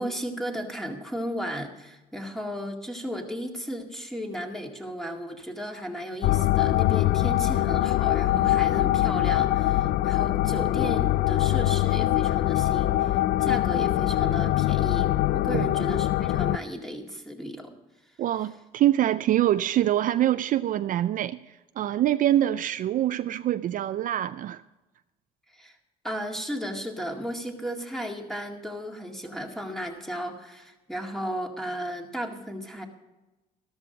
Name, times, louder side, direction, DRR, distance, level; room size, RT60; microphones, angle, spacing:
voice 1, 0.0-17.7 25.5-25.8 26.0-32.8, equal, ahead, 2.0 m, -34 dB
sound 1, 6.2-16.6, left 15 dB, 70° left, 0.4 m, -23 dB
voice 2, 18.2-21.4 21.8-24.6, right 12 dB, 55° right, 0.4 m, -24 dB
13.5 x 13.0 x 4.0 m
cardioid pair, 110°, 17 cm